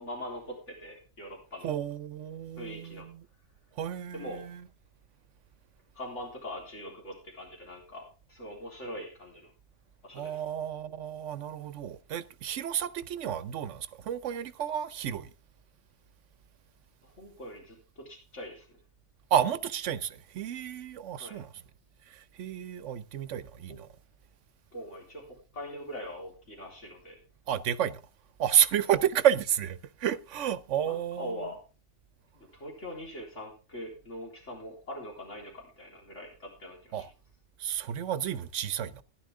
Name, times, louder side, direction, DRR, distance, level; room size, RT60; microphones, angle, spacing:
voice 1, 0.0-1.7 2.6-3.1 4.1-4.4 5.9-9.5 10.0-10.4 17.0-18.7 21.2-21.4 23.7-23.8 24.7-27.2 30.8-31.6 32.3-37.1, equal, 90° left, 4.1 m, -42 dB
voice 2, 1.6-3.2 3.8-4.6 10.1-15.3 19.3-21.5 22.1-23.9 27.5-28.0 28.4-31.3 36.9-37.1 37.6-39.0, right 10 dB, 90° right, 1.1 m, -31 dB
14.0 x 10.5 x 3.6 m
omnidirectional pair, 1.2 m